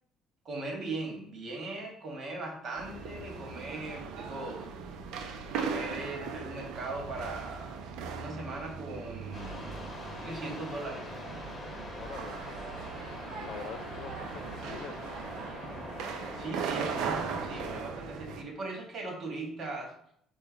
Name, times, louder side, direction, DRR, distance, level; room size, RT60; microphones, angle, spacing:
voice 1, 0.4-4.7 5.5-9.7 10.2-11.1 16.3-19.9, right 2 dB, 45° right, 1 dB, 1.5 m, -39 dB
sound 1, 2.8-18.4, right 6 dB, 80° right, 0.5 m, -39 dB
sound 2, 9.3-17.8, left 1 dB, 20° left, 1.3 m, -43 dB
voice 2, 12.0-12.4 13.2-15.0, left 7 dB, 65° left, 9 dB, 0.4 m, -44 dB
5.5 x 2.3 x 3.9 m, 0.67 s
cardioid pair, 120°, 0 cm